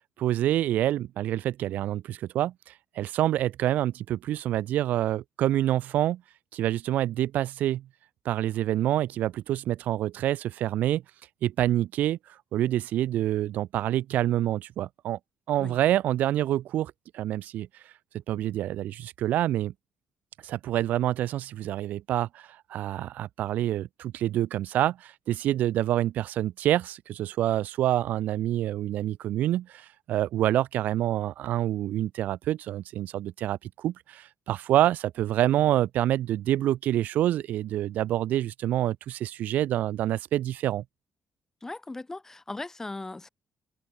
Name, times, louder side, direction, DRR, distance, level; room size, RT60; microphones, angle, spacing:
voice 1, 0.2-6.2 6.5-7.9 8.3-11.0 11.4-12.2 12.5-15.2 15.5-17.7 18.3-19.7 20.4-40.8, right 13 dB, 75° right, 0.4 m, -27 dB
voice 2, 41.6-43.3, left 2 dB, 15° left, 0.9 m, -38 dB
cardioid pair, 110°, 3 cm